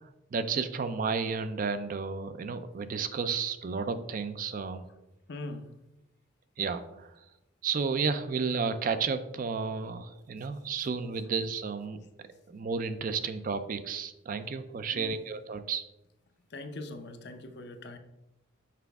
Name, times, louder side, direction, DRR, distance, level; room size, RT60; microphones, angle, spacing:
voice 1, 0.0-4.9 6.6-7.2 7.6-12.0 12.5-15.8, right 5 dB, 40° right, 11 dB, 0.4 m, -32 dB
voice 2, 5.3-5.7 14.9-15.2 16.5-18.0, left 2 dB, 55° left, 7 dB, 0.6 m, -41 dB
5.8 x 5.0 x 3.5 m, 0.92 s
head